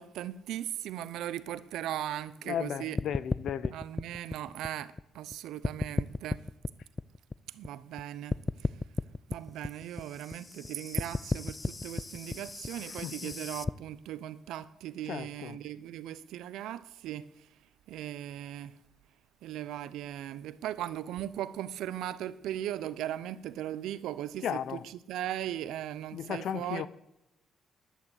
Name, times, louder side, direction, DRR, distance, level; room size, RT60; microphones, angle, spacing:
voice 1, 0.0-3.0 3.7-6.4 7.5-8.4 9.3-17.3 17.9-18.7 19.4-24.8 25.1-26.9, right 12 dB, 85° right, 0.7 m, -38 dB
voice 2, 2.4-3.7 12.8-13.4 15.0-15.6 24.4-24.9 26.1-26.9, left 9 dB, 70° left, 0.7 m, -35 dB
sound 1, 3.0-5.3 5.6-8.0 8.3-13.7, left 3 dB, 25° left, 0.4 m, -34 dB
11.5 x 9.2 x 8.0 m
cardioid pair, 90°, 0 cm